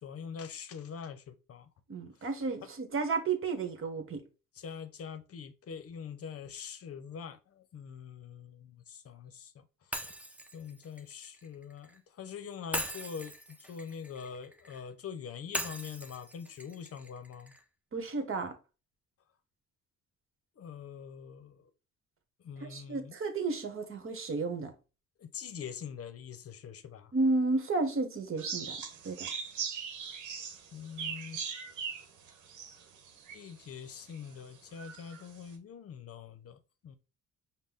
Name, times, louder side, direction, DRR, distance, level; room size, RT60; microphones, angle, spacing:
voice 1, 0.0-1.7 4.5-10.2 10.5-17.5 20.6-21.7 22.4-23.2 25.2-27.1 30.7-31.5 33.3-37.0, left 7 dB, 50° left, 0.7 m, -44 dB
voice 2, 1.9-4.2 17.9-18.5 22.6-24.7 27.1-28.8 29.0-29.3, right 3 dB, 45° right, 1.2 m, -32 dB
Shatter, 9.9-12.0 12.7-14.8 15.5-17.6, equal, 5° right, 0.7 m, -40 dB
sound 1, 28.4-33.6 34.1-34.2 34.7-35.2, right 6 dB, 80° right, 1.0 m, -39 dB
5.3 x 2.2 x 3.8 m
cardioid pair, 90°, 30 cm